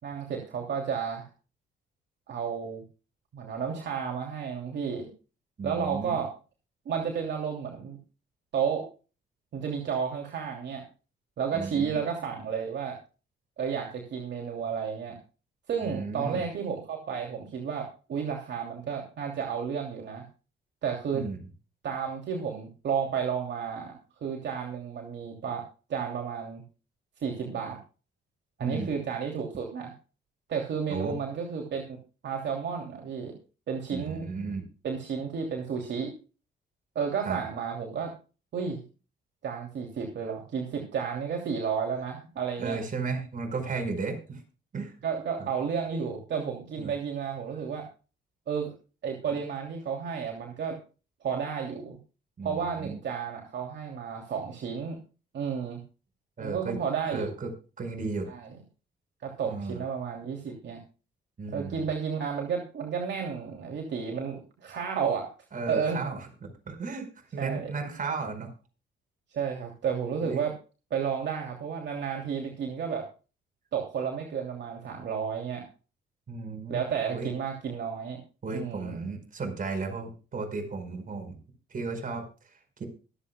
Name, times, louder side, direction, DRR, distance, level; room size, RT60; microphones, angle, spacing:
voice 1, 0.0-1.3 2.3-2.8 3.3-5.1 5.6-6.3 6.8-8.0 8.5-8.9 9.5-10.8 11.4-13.0 13.6-15.2 15.7-20.3 20.8-21.2 21.8-25.6 25.9-26.6 27.2-27.8 28.6-29.9 30.5-32.0 32.2-33.3 33.7-34.3 34.8-36.1 36.9-38.1 38.5-38.8 39.4-42.8 45.0-47.9 48.5-48.7 49.0-50.8 51.2-52.0 52.4-55.0 55.3-55.8 56.4-57.3 58.3-58.5 59.2-60.8 61.5-65.3 65.7-66.0 67.4-67.7 69.3-70.5 70.9-73.0 73.7-75.6 76.7-78.2 78.5-79.1, right 6 dB, 65° right, 1 dB, 2.9 m, -32 dB
voice 2, 5.6-6.2 11.5-12.0 15.8-16.4 21.1-21.4 28.6-28.9 30.9-31.2 33.9-34.6 37.2-37.4 42.6-44.4 44.7-44.9 45.4-45.5 46.8-46.9 52.4-53.0 56.4-56.8 57.1-57.5 57.8-58.3 59.4-59.8 61.4-61.9 65.5-67.1 67.3-68.5 70.2-70.4 76.3-76.8 77.1-77.3 78.4-81.4 81.7-82.2, right 4 dB, 45° right, 5 dB, 4.9 m, -34 dB
24.5 x 8.4 x 2.3 m, 0.34 s
cardioid pair, 90°, 20 cm